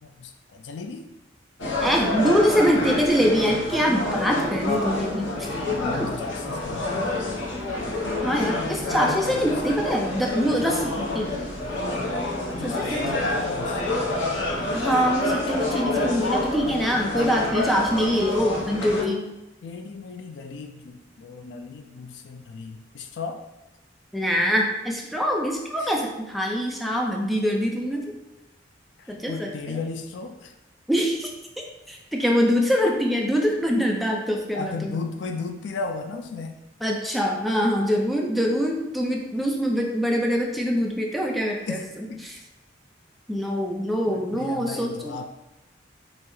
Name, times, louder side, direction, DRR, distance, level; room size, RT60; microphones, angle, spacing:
voice 1, 0.0-1.1 5.7-7.3 8.9-9.5 12.5-13.8 19.6-23.4 25.8-25.9 29.0-30.5 34.5-36.6 41.6-42.3 44.1-45.2, left 4 dB, 65° left, 6 dB, 0.4 m, -35 dB
sound 1, 1.6-19.0, left 2 dB, 85° left, 0.8 m, -28 dB
voice 2, 1.8-5.5 6.0-6.1 8.2-11.3 12.6-13.0 14.7-19.3 24.1-28.0 29.1-29.8 30.9-31.3 31.9-34.9 36.8-41.8 42.2-42.4 43.3-45.1, equal, ahead, -1 dB, 0.4 m, -24 dB
5.4 x 2.0 x 3.1 m, 0.98 s
head